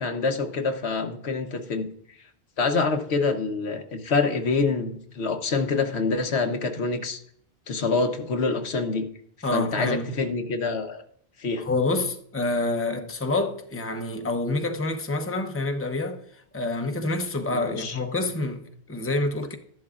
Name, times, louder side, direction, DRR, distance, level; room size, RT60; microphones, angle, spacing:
voice 1, 0.0-1.9 2.6-7.2 7.7-9.0 9.5-11.0 11.4-11.6 17.5-18.0, left 4 dB, 90° left, 1.3 m, -26 dB
voice 2, 9.4-10.1 11.6-16.2 16.5-19.5, left 2 dB, 15° left, 0.8 m, -27 dB
13.5 x 11.0 x 2.5 m
omnidirectional pair, 1.1 m